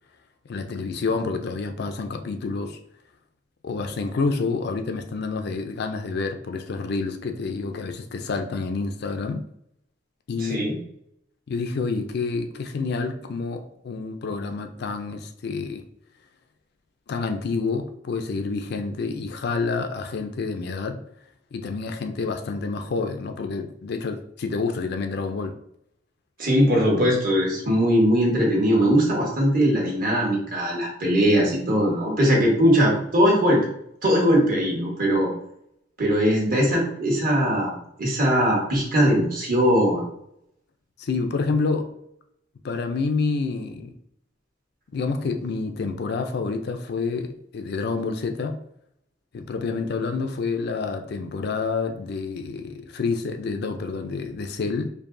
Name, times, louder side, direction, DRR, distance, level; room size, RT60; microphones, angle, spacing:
voice 1, 0.5-2.8 3.6-9.4 10.3-10.7 11.5-15.8 17.1-21.0 21.5-25.6 41.0-41.9 42.6-43.9 44.9-48.6 49.3-54.9, left 4 dB, 60° left, 6 dB, 0.4 m, -28 dB
voice 2, 10.4-10.7 26.4-33.7 34.0-35.3 36.0-37.7 38.0-40.0, equal, 50° right, -2 dB, 1.3 m, -20 dB
4.5 x 2.8 x 2.6 m, 0.74 s
head